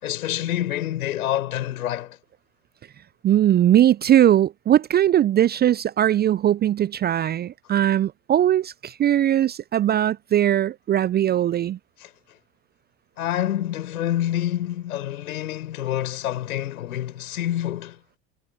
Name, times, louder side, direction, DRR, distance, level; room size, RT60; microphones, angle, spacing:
voice 1, 0.0-2.2 12.0-12.1 13.2-18.0, left 12 dB, 70° left, 5.8 m, -27 dB
voice 2, 3.2-11.8, right 11 dB, 20° right, 0.6 m, -20 dB
figure-of-eight pair, 80°, 45 cm